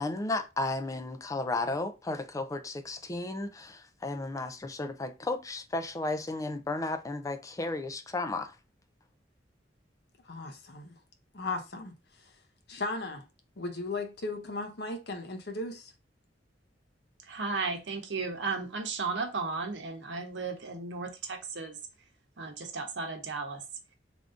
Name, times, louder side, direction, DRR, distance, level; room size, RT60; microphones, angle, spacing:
voice 1, 0.0-8.5, left 2 dB, 20° left, 0.4 m, -34 dB
voice 2, 10.3-10.9 11.3-12.0 12.7-13.2 13.6-15.9, left 2 dB, 65° left, 0.8 m, -36 dB
voice 3, 17.2-21.8 22.4-23.6, right 4 dB, 85° right, 0.9 m, -35 dB
3.5 x 2.6 x 3.6 m
head